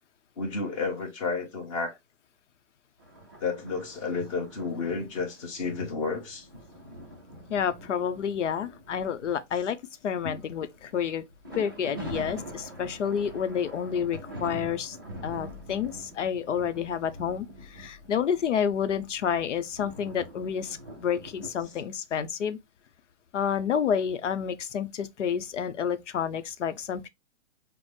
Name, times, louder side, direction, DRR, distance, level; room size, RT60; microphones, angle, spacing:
voice 1, 0.4-2.0 3.4-6.5 10.2-10.4, left 4 dB, 25° left, 1.0 m, -31 dB
sound 1, 3.0-9.7 10.2-21.9, equal, 20° right, 0.3 m, -44 dB
voice 2, 7.5-9.8 10.0-11.2 11.5-15.0 15.2-22.6 23.3-27.1, left 8 dB, 75° left, 0.7 m, -29 dB
6.0 x 2.0 x 3.2 m
hypercardioid pair, 165°, 36 cm